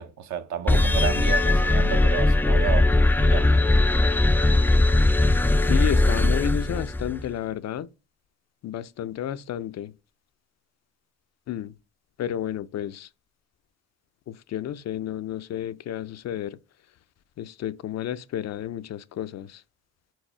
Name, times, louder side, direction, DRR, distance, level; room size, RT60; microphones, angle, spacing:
voice 1, 0.0-2.9 3.2-3.5, right 9 dB, 65° right, 0.9 m, -31 dB
sound 1, 0.7-7.3, left 2 dB, 5° left, 0.4 m, -20 dB
voice 2, 5.7-7.9 8.6-9.9 11.5-11.7 12.2-13.1 14.5-16.6 17.4-19.6, left 11 dB, 60° left, 0.5 m, -31 dB
4.7 x 4.7 x 4.4 m
cardioid pair, 90°, 30 cm